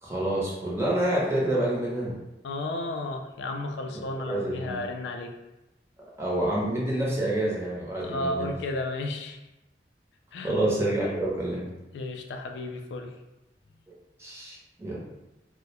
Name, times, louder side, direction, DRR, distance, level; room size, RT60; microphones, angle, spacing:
voice 1, 0.0-2.1 4.3-4.8 6.2-8.5 10.4-11.7 14.2-15.0, right 1 dB, 15° right, -5 dB, 0.6 m, -27 dB
voice 2, 2.4-5.3 8.0-9.4 10.3-10.5 11.9-13.1, left 2 dB, 80° left, 5 dB, 0.3 m, -33 dB
2.2 x 2.0 x 2.8 m, 0.96 s
head